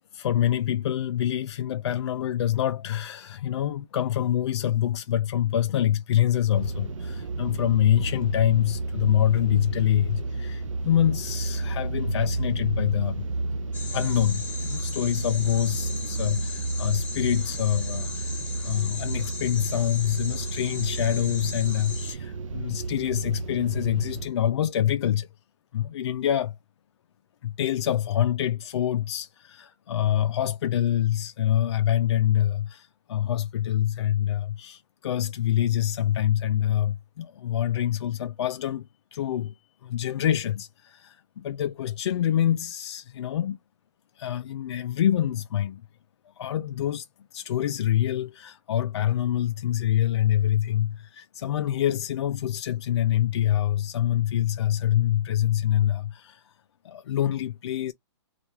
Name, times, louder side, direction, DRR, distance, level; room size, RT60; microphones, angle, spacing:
voice 1, 0.1-13.3 13.9-25.3 25.7-26.5 27.4-38.8 39.1-39.5 39.8-43.6 44.2-45.8 46.4-47.1 47.3-56.4 56.8-57.9, left 11 dB, 60° left, 0.4 m, -26 dB
sound 1, 6.5-24.3, right 2 dB, 90° right, 0.5 m, -31 dB
sound 2, 13.7-22.1, left 4 dB, 10° left, 0.7 m, -38 dB
2.9 x 2.3 x 3.4 m
hypercardioid pair, 160°, 16 cm